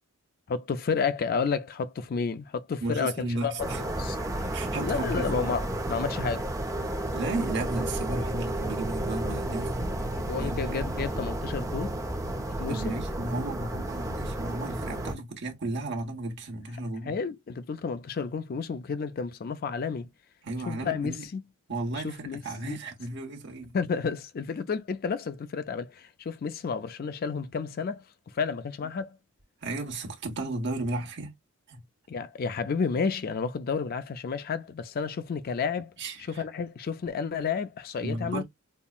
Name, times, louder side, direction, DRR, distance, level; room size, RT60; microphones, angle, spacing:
voice 1, 0.5-3.7 4.0-6.5 10.1-11.9 12.6-13.0 17.1-20.1 20.7-21.4 22.0-22.8 23.7-28.0 28.3-29.2 32.1-35.9 36.2-38.4, left 5 dB, 45° left, 0.4 m, -31 dB
voice 2, 2.8-3.8 4.5-5.5 7.1-10.9 12.7-17.2 20.4-21.3 21.7-23.7 29.6-31.3 31.7-31.8 36.0-36.4 38.0-38.4, right 2 dB, 50° right, 1.1 m, -34 dB
sound 1, 3.6-15.1, right 1 dB, 15° right, 0.5 m, -32 dB
5.4 x 2.1 x 2.3 m
head